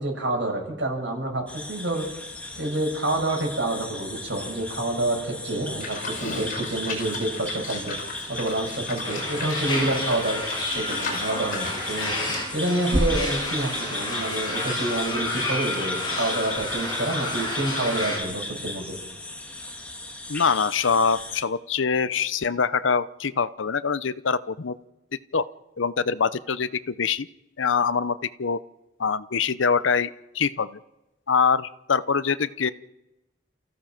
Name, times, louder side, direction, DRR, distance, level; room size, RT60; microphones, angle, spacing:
voice 1, 0.0-2.0 2.6-8.0 8.3-10.4 10.7-12.1 12.5-19.0, right 1 dB, 70° right, 1 dB, 6.9 m, -28 dB
sound 1, 1.5-21.4, left 1 dB, 5° left, 2.0 m, -34 dB
Livestock farm animals working animals, 5.8-12.5, left 3 dB, 45° left, 5.4 m, -37 dB
sound 2, 9.0-18.2, left 2 dB, 25° left, 8.0 m, -30 dB
voice 2, 20.3-24.8 25.3-25.5 25.8-27.3 27.6-28.6 29.0-30.8 31.3-32.7, left 5 dB, 85° left, 15 dB, 0.7 m, -24 dB
29.5 x 15.0 x 6.0 m, 0.97 s
head